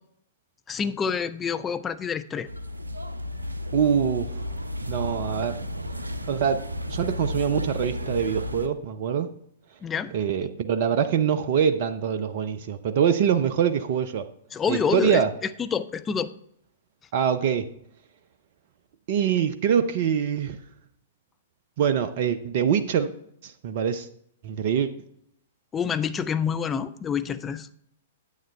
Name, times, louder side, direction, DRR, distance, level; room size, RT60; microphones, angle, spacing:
voice 1, 0.7-2.5 9.8-10.1 14.5-16.3 25.7-27.7, left 6 dB, 20° left, 10 dB, 0.5 m, -27 dB
sound 1, 2.5-8.7, left 1 dB, 85° right, 0.7 m, -33 dB
voice 2, 3.7-4.4 4.9-5.6 6.3-6.6 6.9-9.3 10.1-14.3 14.7-15.3 17.1-17.7 19.1-20.6 21.8-23.1 23.4-24.1 24.4-24.9, right 8 dB, 50° right, 10 dB, 0.6 m, -24 dB
9.5 x 8.7 x 3.3 m, 0.71 s
figure-of-eight pair, 110°, 0 cm